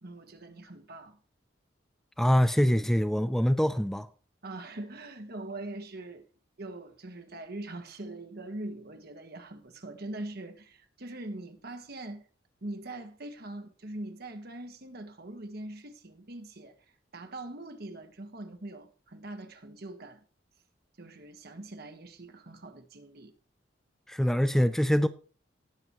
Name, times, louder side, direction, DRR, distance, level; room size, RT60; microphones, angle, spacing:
voice 1, 0.0-1.2 4.4-6.2 6.6-12.2 12.6-16.8 17.1-20.2 21.0-23.3, right 2 dB, 60° right, 1.5 m, -42 dB
voice 2, 2.2-4.1 24.1-25.1, equal, ahead, 0.4 m, -24 dB
18.5 x 7.0 x 3.0 m
head